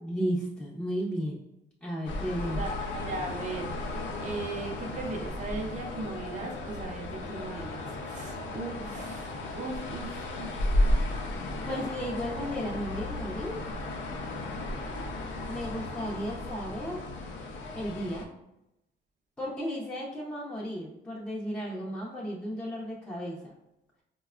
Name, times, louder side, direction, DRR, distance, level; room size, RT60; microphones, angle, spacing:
voice 1, 0.0-1.4 1.8-2.6 11.7-13.6 15.5-17.0 17.7-18.3 19.4-23.5, equal, 5° left, -5 dB, 0.6 m, -34 dB
sound 1, 2.1-18.3, left 1 dB, 75° left, 0.6 m, -34 dB
voice 2, 2.6-3.7 4.2-10.5, right 3 dB, 40° right, 0 dB, 0.6 m, -38 dB
3.9 x 2.2 x 2.4 m, 0.88 s
cardioid pair, 90°, 20 cm